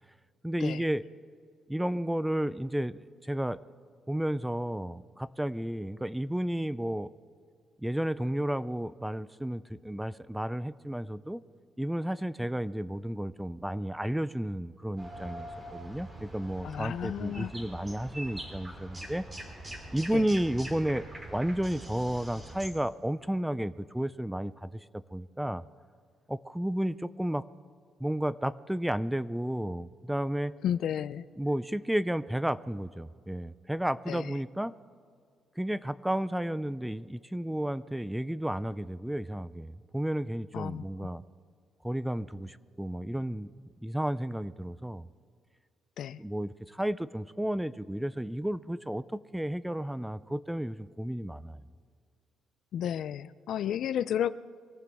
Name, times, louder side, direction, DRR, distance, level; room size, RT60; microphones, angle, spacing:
voice 1, 0.4-1.0 1.7-3.6 4.1-7.1 7.8-11.4 11.8-19.3 19.9-21.0 21.3-25.6 26.3-27.4 28.0-30.5 31.4-34.7 35.6-41.2 41.8-43.5 43.8-45.1 46.2-51.6, right 1 dB, 5° right, 17 dB, 0.4 m, -32 dB
sound 1, 15.0-22.7, right 1 dB, 25° right, 3.3 m, -43 dB
voice 2, 16.6-17.5 20.1-20.3 30.6-31.2 34.1-34.4 40.5-40.8 46.0-46.2 52.7-54.3, left 10 dB, 70° left, 16 dB, 0.4 m, -32 dB
24.5 x 14.5 x 3.5 m, 2.1 s
cardioid pair, 90°, 0 cm